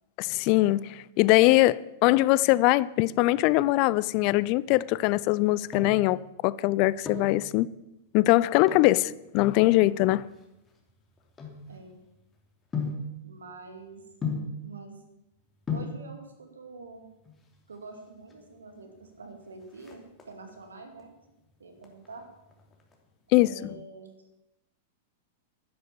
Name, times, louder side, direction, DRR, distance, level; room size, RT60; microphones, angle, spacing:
voice 1, 0.2-7.7 8.1-10.3 23.3-23.5, left 18 dB, 50° left, 0.4 m, -22 dB
sound 1, 5.3-6.1 6.8-7.4 8.6-9.0 9.7-12.1 12.7-13.1 14.2-14.6 15.4-15.5 15.7-16.0 17.1-17.7 18.0-18.1 18.3-18.4 18.8-19.2 19.5-20.6 21.0-21.4 21.8-22.9 23.2-23.3, left 4 dB, 20° left, 2.9 m, -35 dB
voice 2, 8.8-9.1 11.7-12.0 13.2-14.0 14.6-15.0 15.7-17.1 17.7-21.1 21.6-22.3 23.3-24.1, right 3 dB, 85° right, 2.6 m, -46 dB
11.0 x 10.0 x 7.0 m
hypercardioid pair, 105°, 0 cm